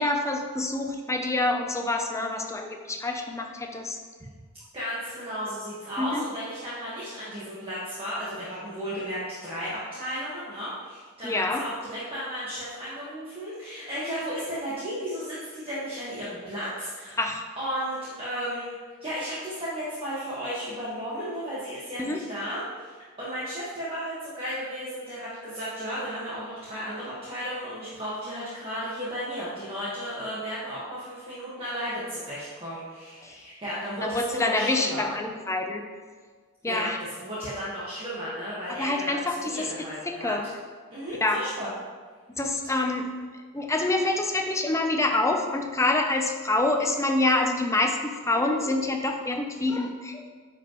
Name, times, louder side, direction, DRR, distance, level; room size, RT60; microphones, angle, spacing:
voice 1, 0.0-4.0 6.0-6.2 11.2-11.6 17.2-17.4 22.0-22.2 33.2-33.3 34.0-35.8 36.6-37.0 38.8-39.7 40.1-40.4 41.2-41.4 42.3-43.1 43.5-50.3, left 2 dB, 15° left, 3 dB, 0.6 m, -26 dB
voice 2, 4.7-17.2 17.6-18.7 19.0-35.0 36.7-40.3 40.9-41.7, equal, 25° right, -10 dB, 1.5 m, -34 dB
9.7 x 5.1 x 3.0 m, 1.5 s
head